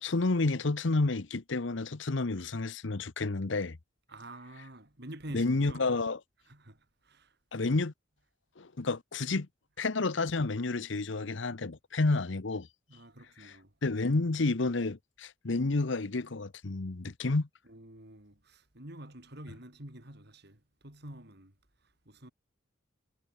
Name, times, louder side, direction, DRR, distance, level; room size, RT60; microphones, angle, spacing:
voice 1, 0.0-3.8 5.3-6.2 7.5-7.9 8.6-9.5 9.8-12.7 13.4-13.6 13.8-17.5, left 3 dB, 65° left, 0.9 m, -30 dB
voice 2, 4.1-5.9 6.5-7.4 12.9-13.7 17.7-21.5 22.0-22.3, right 1 dB, 55° right, 4.6 m, -48 dB
head